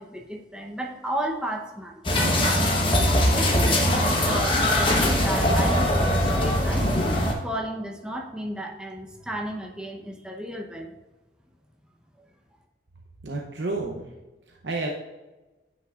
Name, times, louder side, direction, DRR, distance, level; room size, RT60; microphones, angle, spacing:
voice 1, 0.0-2.2 3.3-6.9 7.4-10.9, equal, 5° right, 0 dB, 0.8 m, -33 dB
sound 1, 2.0-7.3, left 1 dB, 30° left, 1.0 m, -21 dB
voice 2, 13.2-14.1 14.5-14.9, right 3 dB, 85° right, 0 dB, 0.8 m, -30 dB
9.6 x 5.9 x 2.4 m, 1.1 s
head